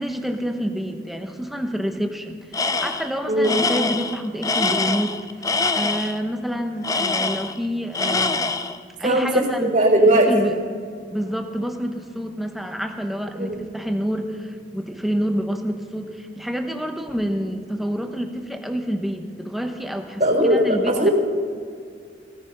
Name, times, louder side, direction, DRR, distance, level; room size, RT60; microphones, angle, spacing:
voice 1, 0.0-5.2 5.7-8.6 9.0-9.7 10.1-10.6 11.1-21.1, equal, ahead, 5 dB, 1.1 m, -28 dB
Tools, 2.5-3.1 3.4-6.2 6.8-7.7 7.9-8.8, left 3 dB, 20° left, 0.5 m, -24 dB
voice 2, 9.0-10.5 13.5-13.6 20.2-21.1, right 1 dB, 45° right, 1 dB, 3.6 m, -18 dB
17.0 x 14.0 x 5.4 m, 2.2 s
head